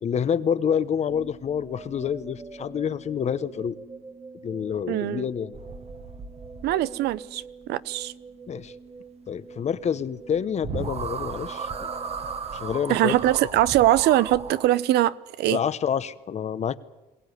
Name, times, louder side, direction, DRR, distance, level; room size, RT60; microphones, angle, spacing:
voice 1, 0.0-3.7 4.4-5.6 8.5-8.7 9.3-11.9 12.5-13.1 15.5-16.8, left 8 dB, 40° left, 1.0 m, -27 dB
sound 1, 1.1-13.2, right 4 dB, 20° right, 2.0 m, -46 dB
voice 2, 4.9-5.3 6.6-8.1 12.9-15.6, right 14 dB, 80° right, 0.7 m, -22 dB
sound 2, 5.5-7.1 10.3-10.4 10.6-14.7, right 5 dB, 35° right, 1.4 m, -35 dB
22.0 x 17.5 x 9.7 m
cardioid pair, 110°, 17 cm